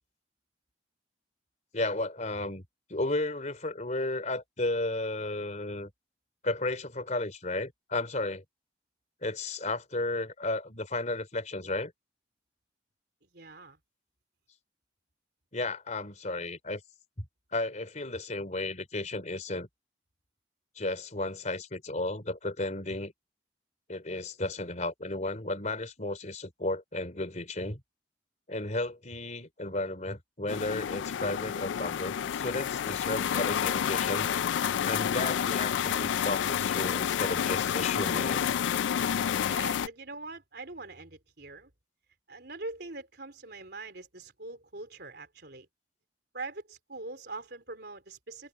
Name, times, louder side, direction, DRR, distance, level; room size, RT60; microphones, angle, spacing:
voice 1, 1.7-2.6 2.9-5.9 6.4-8.4 9.2-11.9 15.5-16.8 17.2-17.3 17.5-19.7 20.8-23.1 23.9-27.8 28.5-34.3 34.8-38.4, left 2 dB, 40° left, 4.0 m, -33 dB
voice 2, 13.2-13.8 39.4-41.7 42.3-45.7 46.3-48.5, right 3 dB, 65° right, 4.1 m, -43 dB
sound 1, 30.5-39.9, left 8 dB, 85° left, 0.3 m, -29 dB
head